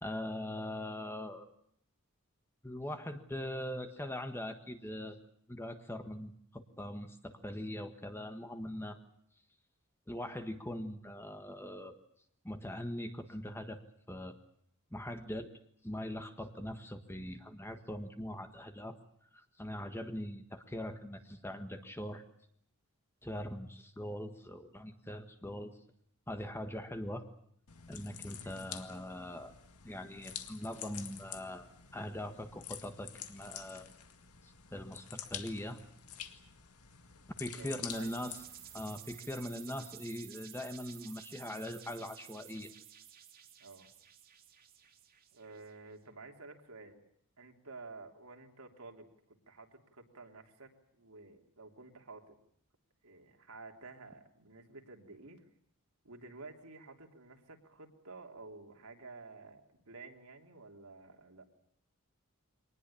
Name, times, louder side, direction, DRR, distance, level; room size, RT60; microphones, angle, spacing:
voice 1, 0.0-1.5 2.6-5.2 5.5-9.0 10.1-11.9 12.4-13.8 14.1-14.4 14.9-15.5 15.8-19.0 19.3-22.2 23.2-25.8 26.3-27.2 27.9-29.5 29.8-33.9 34.4-35.8 37.4-38.4 38.7-42.7, left 1 dB, 10° left, 7 dB, 1.4 m, -41 dB
sound 1, 27.7-39.0, left 9 dB, 85° left, 2.0 m, -48 dB
voice 2, 37.6-38.1 43.6-43.9 45.3-47.0 47.4-52.4 53.0-55.5 56.0-61.5, right 3 dB, 80° right, 3 dB, 3.3 m, -52 dB
sound 2, 37.9-45.7, right 10 dB, 45° right, 2.7 m, -53 dB
24.0 x 19.5 x 8.5 m, 0.67 s
head